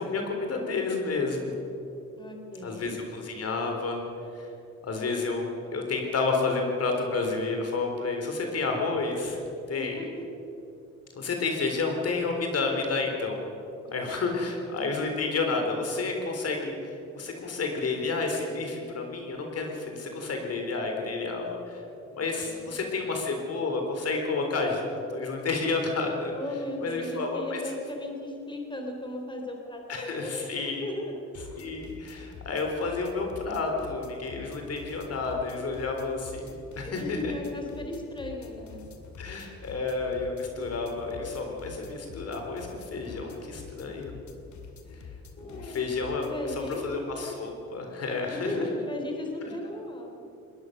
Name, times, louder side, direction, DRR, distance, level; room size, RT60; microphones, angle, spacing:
voice 1, 0.0-1.5 2.6-4.0 4.3-4.5 4.9-9.4 9.7-10.0 11.2-13.4 13.9-21.8 22.1-26.3 26.8-27.6 29.9-30.9 31.6-37.3 39.2-44.1 44.9-45.0 45.4-48.5 49.4-49.5, left 3 dB, 55° left, 3 dB, 3.8 m, -30 dB
voice 2, 2.2-2.9 9.7-10.2 22.4-23.0 26.3-31.3 36.9-38.8 45.4-45.8 46.2-47.1 48.3-50.2, left 1 dB, 15° left, 2 dB, 3.8 m, -36 dB
sound 1, 31.3-47.0, left 5 dB, 70° left, 2.5 m, -47 dB
21.0 x 19.0 x 6.6 m, 2.8 s
cardioid pair, 90°, 30 cm